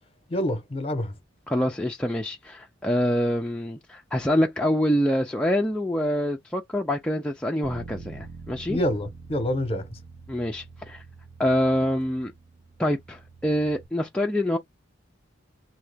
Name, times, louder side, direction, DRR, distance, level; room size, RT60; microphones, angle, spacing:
voice 1, 0.3-1.1 8.7-9.9, left 1 dB, 30° left, 0.8 m, -27 dB
voice 2, 1.5-8.8 10.3-11.0 11.4-12.3 12.8-14.6, equal, 5° left, 0.4 m, -25 dB
Bass guitar, 7.6-13.9, right 4 dB, 75° right, 0.7 m, -45 dB
2.8 x 2.3 x 3.4 m
head